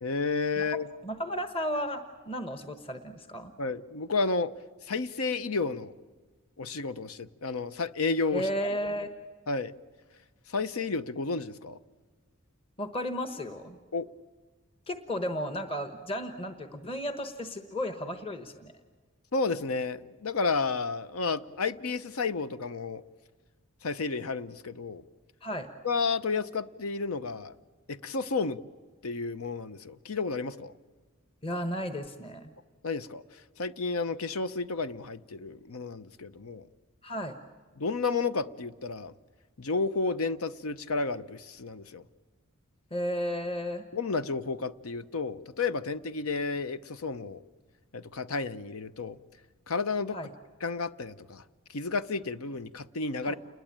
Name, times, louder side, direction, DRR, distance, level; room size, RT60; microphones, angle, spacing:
voice 1, 0.0-0.9 3.6-4.5 4.8-5.9 6.6-8.5 9.5-9.7 10.5-11.8 13.9-14.1 19.3-23.0 23.8-25.0 25.8-27.5 27.9-28.6 29.0-30.7 32.8-36.7 37.8-39.1 39.6-42.0 43.9-47.4 47.9-49.2 49.7-50.2 50.6-51.4 51.7-53.3, left 4 dB, 80° left, 0.8 m, -31 dB
voice 2, 1.0-3.5 8.3-9.1 12.8-13.8 14.9-18.7 25.4-25.7 31.4-32.5 37.0-37.4 42.9-43.9 50.1-50.3 53.2-53.3, equal, 25° left, 1.2 m, -34 dB
29.0 x 21.0 x 8.8 m
head